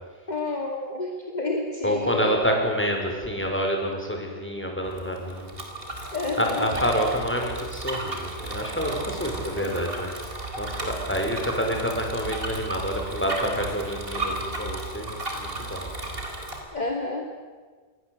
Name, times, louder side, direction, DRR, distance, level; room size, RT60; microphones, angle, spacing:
voice 1, 0.3-2.4 6.1-6.7 9.6-9.9 16.7-17.3, left 2 dB, 40° left, 1 dB, 2.8 m, -30 dB
voice 2, 1.8-5.6 6.4-10.2 10.6-15.9, equal, 10° left, 2 dB, 5.5 m, -28 dB
Bicycle, 4.8-16.6, right 2 dB, 55° right, 4.6 m, -34 dB
28.0 x 23.0 x 8.0 m, 1.5 s
omnidirectional pair, 1.1 m